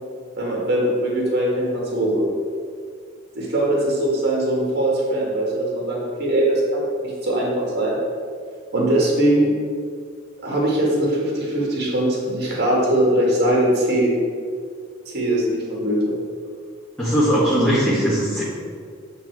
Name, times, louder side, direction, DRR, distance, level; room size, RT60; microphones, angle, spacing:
voice 1, 0.4-2.3 3.4-8.0 8.7-9.5 10.4-14.1 15.1-16.2, right 1 dB, 55° right, -3 dB, 1.9 m, -21 dB
voice 2, 17.0-18.4, equal, 5° left, -10 dB, 1.4 m, -19 dB
8.6 x 3.8 x 4.7 m, 2.1 s
head